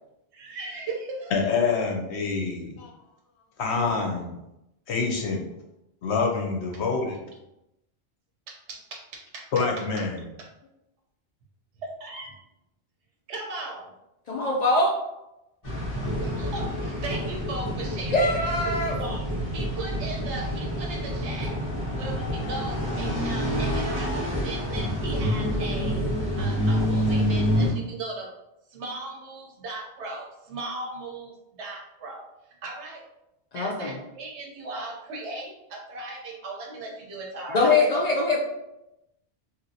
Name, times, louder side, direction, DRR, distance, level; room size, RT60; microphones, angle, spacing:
voice 1, 0.3-1.3 2.4-2.5 8.5-10.0 11.8-12.4 13.3-13.9 16.2-18.2 18.7-19.2 19.5-21.6 21.9-26.0 26.4-28.3 28.7-32.2 32.6-33.0 33.5-38.1, right 2 dB, 80° right, 0 dB, 1.0 m, -37 dB
voice 2, 1.3-2.9 3.6-4.4 4.9-5.4 6.0-7.2 9.5-10.2, left 4 dB, 75° left, 1 dB, 0.9 m, -26 dB
voice 3, 14.3-14.9 18.1-19.0 33.5-34.0 37.5-38.4, left 2 dB, 60° left, -2 dB, 0.4 m, -22 dB
sound 1, 15.6-27.7, equal, 35° left, 0.9 m, -27 dB
2.9 x 2.7 x 2.6 m, 0.90 s
omnidirectional pair, 1.1 m